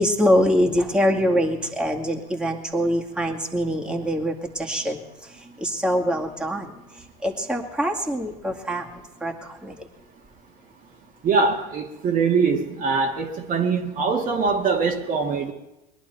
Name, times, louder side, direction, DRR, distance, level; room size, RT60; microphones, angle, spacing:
voice 1, 0.0-5.0 5.4-6.7 7.2-8.9 9.2-9.8, equal, 5° right, 0 dB, 2.2 m, -24 dB
voice 2, 11.2-15.5, right 4 dB, 40° right, 1 dB, 1.8 m, -23 dB
21.5 x 11.5 x 4.5 m, 0.97 s
hypercardioid pair, 90°, 21 cm